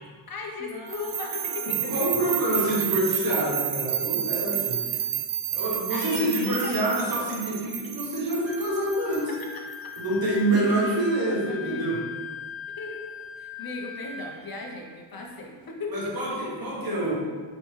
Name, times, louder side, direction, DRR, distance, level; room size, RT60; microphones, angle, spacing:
voice 1, 0.3-1.9 5.9-6.8 10.5-12.1 12.8-13.0 13.4-16.1, left 3 dB, 50° left, 0 dB, 0.7 m, -37 dB
sound 1, 0.6-2.9, equal, 20° right, 0.6 m, -42 dB
sound 2, 0.9-10.0, right 11 dB, 85° right, 0.5 m, -31 dB
voice 2, 1.6-5.0 5.5-9.3 10.0-12.0 15.9-17.1, right 1 dB, 50° right, -4 dB, 1.2 m, -26 dB
Wind instrument woodwind instrument, 8.4-14.7, left 6 dB, 30° left, 1.5 m, -40 dB
5.3 x 3.0 x 3.1 m, 1.5 s
wide cardioid pair, 145°, 45 cm